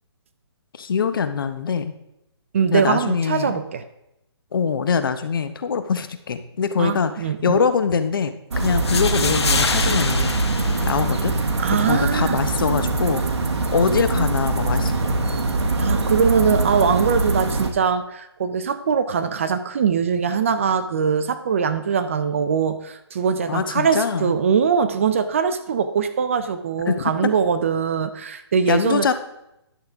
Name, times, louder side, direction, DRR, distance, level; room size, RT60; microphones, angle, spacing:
voice 1, 0.7-1.9 2.7-3.6 4.5-10.4 10.8-11.3 11.8-13.2 13.7-15.3 23.5-24.3 26.9-27.3 28.7-29.1, left 6 dB, 50° left, 10 dB, 0.7 m, -23 dB
voice 2, 2.5-3.8 6.8-7.6 11.6-12.4 15.8-29.1, right 6 dB, 30° right, 10 dB, 0.4 m, -22 dB
sound 1, 8.5-17.7, right 2 dB, 75° right, 1.2 m, -23 dB
sound 2, 8.6-11.6, left 5 dB, 70° left, 1.1 m, -26 dB
11.0 x 6.5 x 3.5 m, 0.84 s
hypercardioid pair, 160°, 14 cm